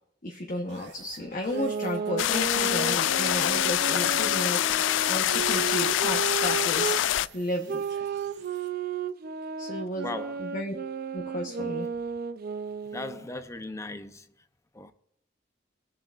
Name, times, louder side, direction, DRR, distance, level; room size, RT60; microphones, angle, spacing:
voice 1, 0.2-7.0 7.3-7.8 9.6-10.1 10.4-10.7 11.1-11.9, left 1 dB, 45° left, 1.0 m, -33 dB
sound 1, 0.7-8.7, right 4 dB, 70° right, 1.9 m, -53 dB
sound 2, 1.5-7.0 7.7-13.2, right 6 dB, 55° right, 0.5 m, -33 dB
sound 3, 2.2-7.3, left 12 dB, 90° left, 0.3 m, -25 dB
voice 2, 10.0-10.4 12.9-14.5 14.7-14.9, left 2 dB, 15° left, 0.6 m, -38 dB
22.5 x 7.6 x 2.5 m
head